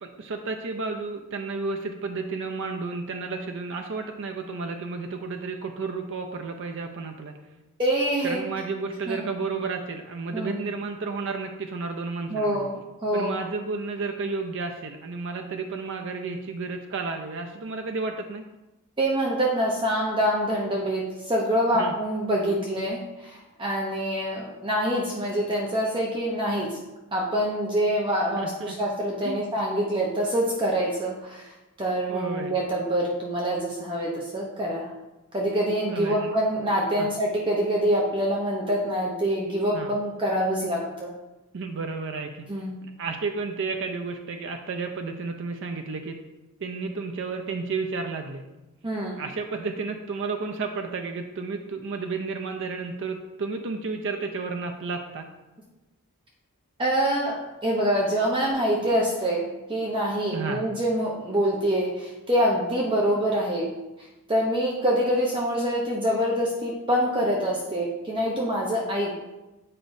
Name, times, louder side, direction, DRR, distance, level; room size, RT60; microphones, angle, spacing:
voice 1, 0.0-7.4 8.2-12.7 13.1-18.4 21.7-21.9 28.4-28.8 29.2-29.4 32.1-32.5 35.8-36.3 37.0-37.1 39.7-39.9 41.5-46.2 46.6-48.4 49.2-55.3 60.3-60.6, right 4 dB, 55° right, 4 dB, 0.4 m, -32 dB
voice 2, 7.8-8.4 9.1-9.3 10.3-10.6 12.3-13.4 19.0-26.8 27.1-34.9 35.3-41.1 42.5-42.8 48.8-49.2 56.8-63.7 64.3-69.1, equal, 20° right, -3 dB, 0.7 m, -25 dB
8.7 x 5.0 x 2.6 m, 1.0 s
head